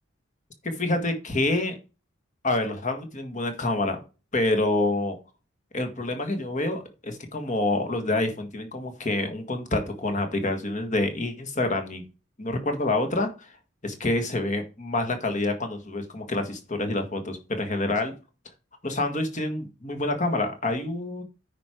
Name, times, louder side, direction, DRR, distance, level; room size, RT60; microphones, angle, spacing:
voice 1, 0.6-1.7 2.4-4.0 4.3-5.2 5.7-12.0 12.4-13.5 13.8-18.1 18.8-21.2, left 2 dB, 35° left, 5 dB, 1.6 m, -27 dB
9.4 x 5.0 x 4.5 m, 0.32 s
head